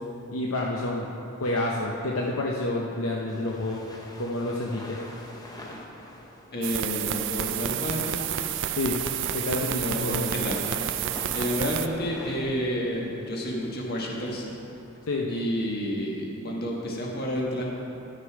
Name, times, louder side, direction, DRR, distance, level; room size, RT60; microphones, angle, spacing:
voice 1, 0.3-1.1 1.4-3.8 4.2-5.0 8.7-9.0 9.3-10.2 15.1-15.3, left 2 dB, 65° left, -2 dB, 0.7 m, -28 dB
sound 1, 2.2-15.0, left 1 dB, 15° left, 0.8 m, -46 dB
voice 2, 6.5-8.2 9.8-10.6 11.3-14.5 15.3-17.7, equal, 45° left, -2 dB, 1.5 m, -30 dB
sound 2, 6.6-11.9, right 10 dB, 55° right, 0.4 m, -30 dB
11.5 x 6.6 x 4.7 m, 2.9 s
head